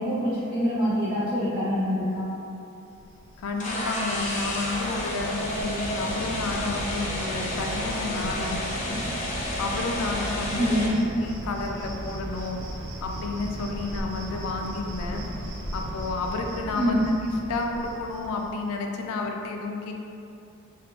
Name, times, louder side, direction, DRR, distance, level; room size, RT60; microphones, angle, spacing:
voice 1, 0.0-2.3 10.6-11.1 16.7-17.1, equal, 20° right, -13 dB, 1.2 m, -25 dB
Cricket, 2.9-18.6, right 1 dB, 55° right, 0.7 m, -37 dB
voice 2, 3.4-9.0 9.6-10.8 11.1-15.3 15.7-17.0 17.5-19.9, left 3 dB, 85° left, 2 dB, 0.3 m, -31 dB
sound 1, 3.6-10.9, left 1 dB, 35° left, 0.5 m, -31 dB
3.7 x 2.8 x 2.3 m, 2.7 s
head